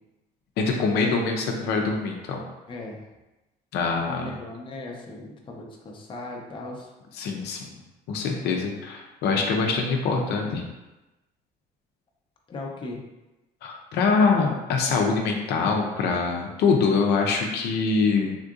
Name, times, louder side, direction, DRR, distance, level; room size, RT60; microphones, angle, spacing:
voice 1, 0.6-2.4 3.7-4.3 7.2-7.8 8.1-10.6 13.6-18.4, left 4 dB, 75° left, 1 dB, 0.5 m, -24 dB
voice 2, 2.7-3.0 4.1-6.9 12.5-13.0, left 2 dB, 30° left, 0 dB, 0.5 m, -38 dB
3.6 x 2.5 x 2.4 m, 1.0 s
cardioid pair, 110°, 17 cm